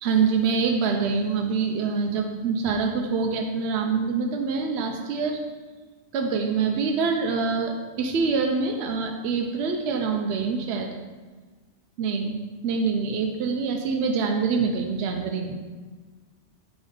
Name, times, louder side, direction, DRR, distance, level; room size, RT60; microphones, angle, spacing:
voice 1, 0.0-5.4 6.1-11.0 12.0-12.4 12.6-15.6, right 5 dB, 70° right, 3 dB, 0.8 m, -25 dB
4.8 x 4.0 x 5.2 m, 1.4 s
omnidirectional pair, 1.2 m